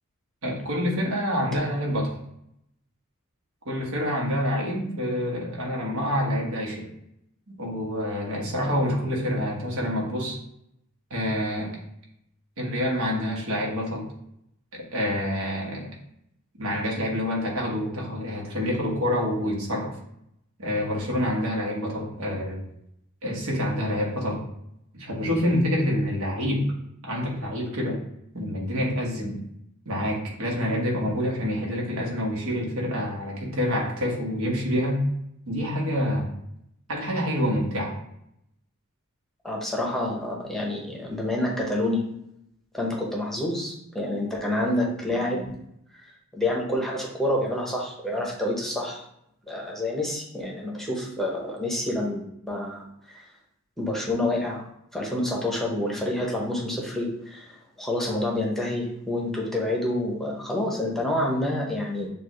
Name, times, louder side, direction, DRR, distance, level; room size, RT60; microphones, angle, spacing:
voice 1, 0.4-2.1 3.6-6.9 7.5-10.4 11.1-11.8 12.6-14.1 14.7-15.9 16.6-20.0 20.6-22.6 23.2-24.4 24.9-26.7 27.0-28.0 28.3-29.4 29.8-35.0 35.5-36.3 36.9-37.9, equal, 70° right, -1 dB, 1.3 m, -27 dB
voice 2, 39.4-42.0 42.7-45.6 45.9-46.0 46.3-49.0 49.5-53.2 53.8-54.7 54.9-62.1, left 1 dB, ahead, -2 dB, 0.9 m, -28 dB
6.8 x 2.5 x 3.0 m, 0.77 s
head